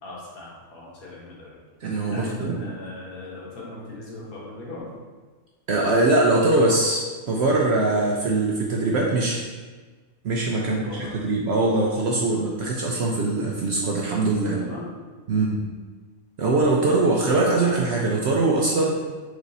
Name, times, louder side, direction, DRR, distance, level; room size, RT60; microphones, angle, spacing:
voice 1, 0.0-1.6 2.1-4.9 10.6-11.1 14.4-15.0 15.3-15.7, left 2 dB, 80° left, -5 dB, 1.6 m, -38 dB
voice 2, 1.8-2.6 5.7-9.4 10.2-14.5 15.3-15.7 16.4-19.0, right 2 dB, 65° right, -2 dB, 0.6 m, -22 dB
4.6 x 2.7 x 4.0 m, 1.4 s
omnidirectional pair, 1.5 m